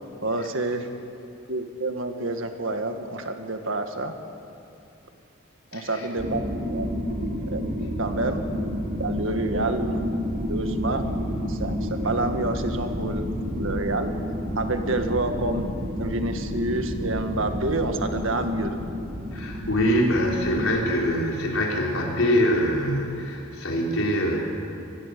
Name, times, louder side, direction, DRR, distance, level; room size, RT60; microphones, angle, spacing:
voice 1, 0.2-0.9 1.5-4.1 5.7-6.4 6.7-6.9 7.4-7.6 8.0-10.0 10.5-11.1 11.5-13.3 13.5-14.1 14.6-15.7 16.0-18.7, right 2 dB, 70° right, 6 dB, 1.8 m, -28 dB
voice 2, 5.7-6.1 19.3-24.4, equal, 80° left, -2 dB, 4.2 m, -24 dB
sound 1, 6.2-20.6, equal, 50° right, 2.9 m, -30 dB
23.5 x 19.5 x 6.9 m, 2.7 s
head